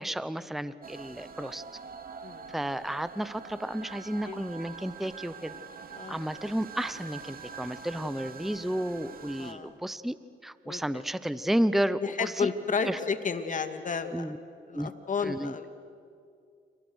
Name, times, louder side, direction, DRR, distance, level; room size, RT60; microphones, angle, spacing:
voice 1, 0.0-1.6 2.5-5.5 6.1-10.2 10.4-12.5 12.8-13.0 14.1-14.4 14.7-14.9 15.2-15.5, right 1 dB, ahead, 14 dB, 0.9 m, -32 dB
sound 1, 0.8-9.5, right 6 dB, 45° right, 2.8 m, -45 dB
voice 2, 5.9-6.2 9.4-9.7 10.6-11.0 12.0-14.3 14.7-15.7, left 5 dB, 40° left, 8 dB, 2.5 m, -32 dB
29.5 x 29.5 x 6.4 m, 2.3 s
cardioid pair, 90°, 20 cm